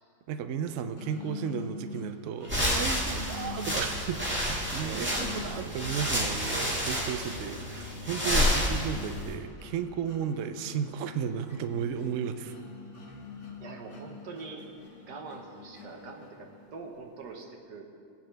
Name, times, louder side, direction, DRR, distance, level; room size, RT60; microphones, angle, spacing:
voice 1, 0.3-12.5, right 7 dB, 65° right, 9 dB, 0.8 m, -34 dB
sound 1, 1.0-16.9, left 5 dB, 50° left, 1.4 m, -46 dB
sound 2, 2.4-9.3, equal, 5° right, 1.7 m, -30 dB
voice 2, 4.8-5.4 13.6-14.6 15.0-18.0, right 4 dB, 85° right, 2 dB, 1.8 m, -44 dB
19.5 x 8.6 x 3.3 m, 2.4 s
omnidirectional pair, 1.7 m